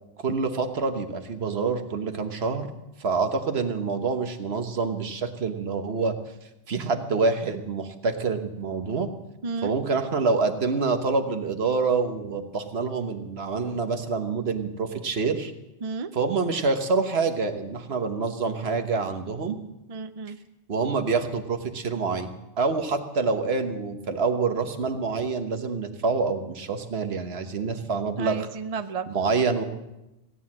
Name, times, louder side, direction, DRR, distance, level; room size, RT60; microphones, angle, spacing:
voice 1, 0.2-2.7 3.0-6.1 6.7-9.1 9.6-15.5 16.1-19.6 20.7-28.5 29.1-29.6, right 4 dB, 65° right, 7 dB, 1.4 m, -26 dB
voice 2, 19.9-20.4 28.2-29.1, right 5 dB, 40° right, 10 dB, 0.6 m, -32 dB
16.5 x 9.5 x 7.3 m, 0.95 s
omnidirectional pair, 1.1 m